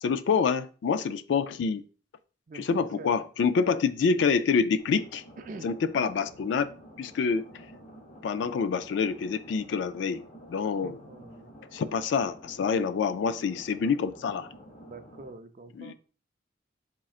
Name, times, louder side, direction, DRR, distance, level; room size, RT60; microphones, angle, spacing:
voice 1, 0.0-1.8 2.5-5.2 5.6-6.7 7.0-7.5 8.2-11.0 11.7-14.5 15.7-15.9, left 5 dB, 75° left, 0.3 m, -27 dB
voice 2, 2.5-3.3 5.4-5.7 10.8-11.6 14.8-15.9, right 3 dB, 45° right, 0.4 m, -45 dB
sound 1, 4.8-15.3, equal, 40° left, 0.7 m, -50 dB
4.1 x 3.7 x 2.4 m
head